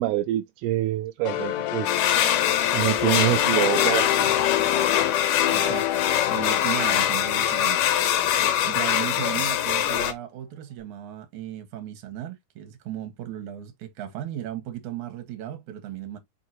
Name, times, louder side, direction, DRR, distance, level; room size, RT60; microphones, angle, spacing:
voice 1, 0.0-2.0 2.7-4.4, right 15 dB, 85° right, 2.5 m, -26 dB
sound 1, 1.2-8.7, left 13 dB, 85° left, 1.7 m, -29 dB
sound 2, 1.9-10.1, left 11 dB, 70° left, 2.4 m, -23 dB
voice 2, 5.5-6.0 6.3-7.8 8.6-16.2, right 12 dB, 60° right, 2.5 m, -35 dB
7.1 x 4.7 x 2.8 m
omnidirectional pair, 4.5 m